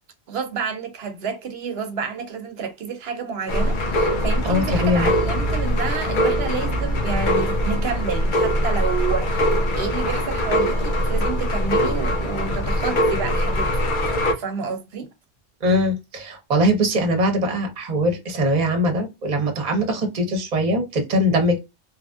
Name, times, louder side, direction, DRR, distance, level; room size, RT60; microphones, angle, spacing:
voice 1, 0.3-15.1, right 5 dB, 70° right, 0.9 m, -30 dB
sound 1, 3.5-14.3, equal, 55° left, 0.7 m, -22 dB
voice 2, 4.4-5.1 15.6-21.6, equal, 40° right, 0.9 m, -21 dB
3.0 x 2.5 x 2.3 m
omnidirectional pair, 1.1 m